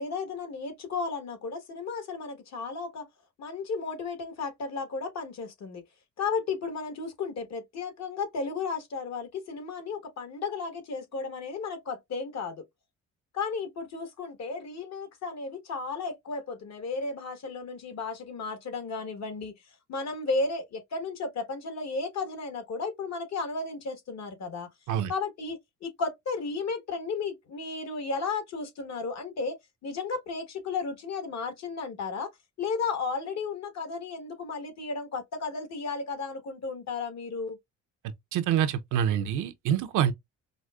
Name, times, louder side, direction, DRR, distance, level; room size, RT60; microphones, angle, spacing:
voice 1, 0.0-3.1 3.4-5.8 6.2-12.6 13.3-19.5 19.9-24.7 25.1-29.5 29.8-32.3 32.6-37.6, left 4 dB, 60° left, 1.2 m, -34 dB
voice 2, 38.3-40.1, right 9 dB, 80° right, 0.6 m, -26 dB
4.9 x 2.0 x 2.3 m
cardioid pair, 90°, 30 cm